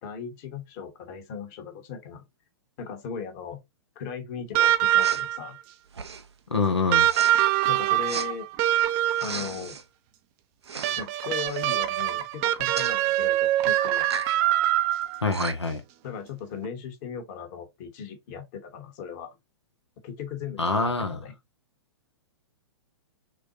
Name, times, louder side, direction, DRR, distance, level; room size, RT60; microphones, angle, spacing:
voice 1, 0.0-2.2 2.8-3.6 3.9-5.6 7.7-8.5 9.2-9.8 11.0-14.1 16.0-19.3 20.0-21.3, left 7 dB, 40° left, 1.2 m, -37 dB
sound 1, 4.5-5.5 6.9-9.5 10.8-15.3 16.6-16.7, right 13 dB, 35° right, 0.5 m, -24 dB
Respiratory sounds, 5.0-5.3 5.9-6.3 7.1-7.3 8.1-8.3 9.1-9.8 10.6-11.0 11.3-11.6 12.8-12.9 14.0-14.4 15.0-15.1 15.3-15.8, right 5 dB, 80° right, 0.6 m, -35 dB
voice 2, 6.5-7.1 15.2-15.8 20.6-21.2, left 4 dB, 90° left, 0.9 m, -25 dB
6.1 x 2.2 x 2.7 m
figure-of-eight pair, 110°, 14 cm